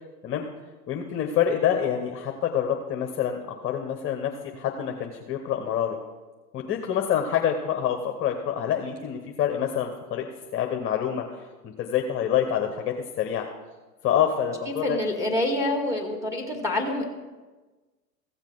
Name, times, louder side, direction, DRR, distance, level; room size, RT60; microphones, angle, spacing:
voice 1, 0.9-6.0 6.5-10.3 10.5-13.5 14.0-15.0, left 9 dB, 25° left, 3 dB, 0.9 m, -27 dB
voice 2, 14.8-17.1, left 1 dB, 5° right, 0 dB, 2.2 m, -26 dB
15.5 x 7.2 x 3.9 m, 1.2 s
hypercardioid pair, 110°, 47 cm